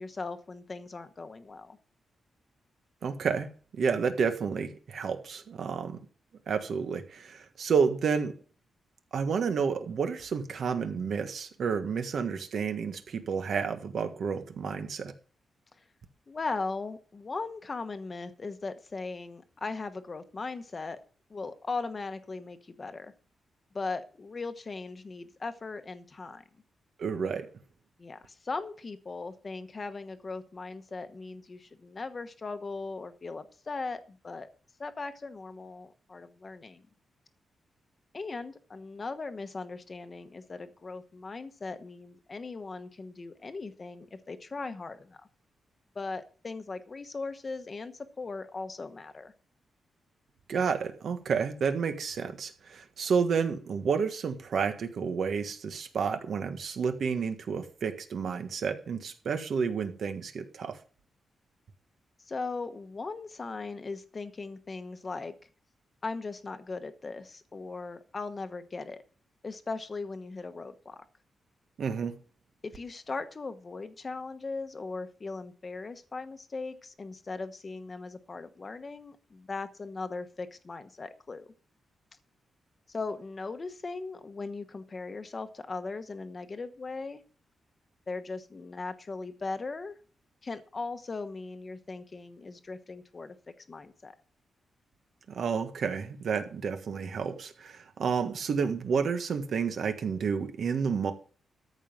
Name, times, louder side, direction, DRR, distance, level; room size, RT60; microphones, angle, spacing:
voice 1, 0.0-1.8 16.3-21.0 21.3-23.1 23.7-26.4 28.0-34.5 34.8-36.8 38.1-45.2 45.9-49.3 62.3-65.3 66.0-69.0 69.4-71.0 72.6-81.5 82.9-87.2 88.1-89.9 90.4-94.1, left 3 dB, 30° left, 1.1 m, -38 dB
voice 2, 3.0-3.5 3.7-6.0 6.5-8.3 9.1-15.1 27.0-27.5 50.5-60.8 71.8-72.1 95.3-101.1, right 6 dB, 55° right, 1.5 m, -30 dB
13.5 x 5.4 x 7.5 m
wide cardioid pair, 170°, 0 cm